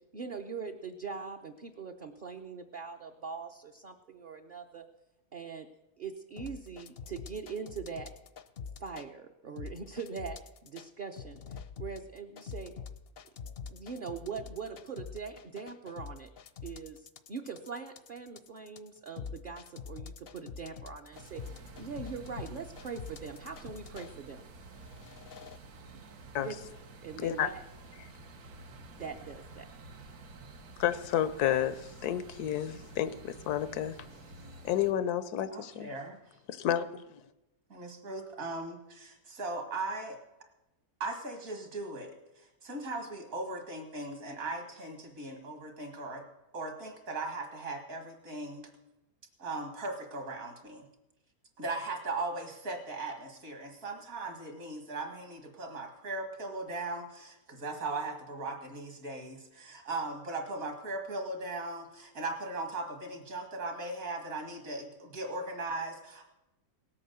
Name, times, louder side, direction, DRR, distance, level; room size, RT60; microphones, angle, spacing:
voice 1, 0.1-4.9 5.3-5.7 6.0-8.1 8.8-12.7 13.4-16.3 16.6-24.5 26.4-26.5 27.0-27.6 29.0-29.7 30.0-30.1, right 5 dB, 45° right, 0.7 m, -42 dB
sound 1, 6.4-9.1 9.6-10.9 11.2-24.1 24.7-25.6, left 6 dB, 55° left, 0.7 m, -45 dB
sound 2, 21.1-34.9, right 3 dB, 80° right, 1.6 m, -50 dB
voice 2, 30.8-34.0 34.6-35.9 36.5-37.0, left 11 dB, 85° left, 1.2 m, -30 dB
voice 3, 35.5-36.2 37.7-40.2 41.0-46.2 46.5-48.7 49.4-50.9 51.6-66.3, right 2 dB, 65° right, 2.4 m, -38 dB
18.0 x 8.6 x 6.8 m
omnidirectional pair, 1.6 m